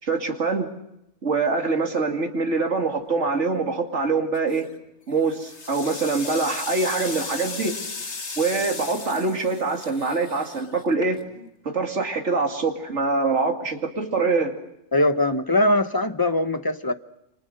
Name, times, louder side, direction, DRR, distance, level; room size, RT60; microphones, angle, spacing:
voice 1, 0.0-0.7 1.2-4.7 5.1-7.7 8.4-11.2 11.6-14.6, right 3 dB, 65° right, 2 dB, 2.8 m, -24 dB
sound 1, 4.3-4.7 5.2-11.5, left 4 dB, 60° left, 2.1 m, -36 dB
voice 2, 14.9-16.9, left 1 dB, 20° left, 9 dB, 1.0 m, -21 dB
28.5 x 26.0 x 6.6 m, 0.85 s
omnidirectional pair, 1.3 m